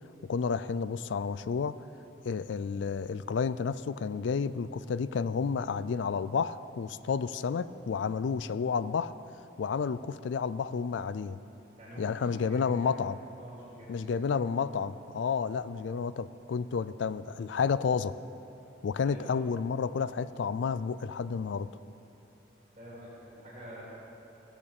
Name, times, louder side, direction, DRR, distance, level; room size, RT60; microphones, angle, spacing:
voice 1, 0.2-1.8 2.2-9.1 9.6-11.4 12.0-13.2 13.9-18.2 18.8-21.7, left 5 dB, 80° left, 16 dB, 0.4 m, -31 dB
voice 2, 11.8-12.9 13.3-14.5 19.0-19.4 22.8-23.8, equal, 35° right, -8 dB, 2.9 m, -47 dB
16.0 x 7.1 x 6.7 m, 2.9 s
head